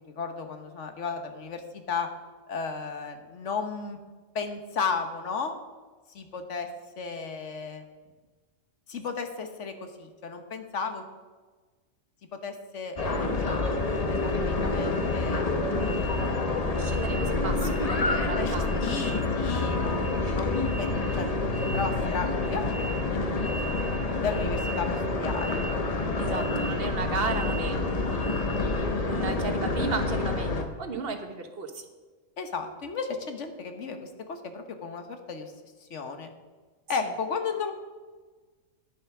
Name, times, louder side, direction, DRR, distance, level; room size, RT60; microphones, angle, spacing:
voice 1, 0.1-2.1 2.5-4.0 4.3-5.5 6.1-6.7 7.0-7.8 8.9-11.0 12.3-15.4 15.8-16.7 18.4-21.3 21.6-23.7 24.2-25.6 26.2-26.6 27.3-27.4 32.4-35.5 35.8-36.3 36.9-37.7, left 5 dB, 65° left, 7 dB, 1.4 m, -34 dB
sound 1, 13.0-30.6, left 2 dB, 35° left, 0.9 m, -28 dB
voice 2, 16.8-18.9 26.2-28.2 29.0-31.8, right 4 dB, 50° right, 6 dB, 1.3 m, -35 dB
Electric guitar, 19.5-23.0, left 1 dB, 90° left, 2.1 m, -44 dB
10.5 x 7.9 x 5.9 m, 1.3 s
omnidirectional pair, 1.3 m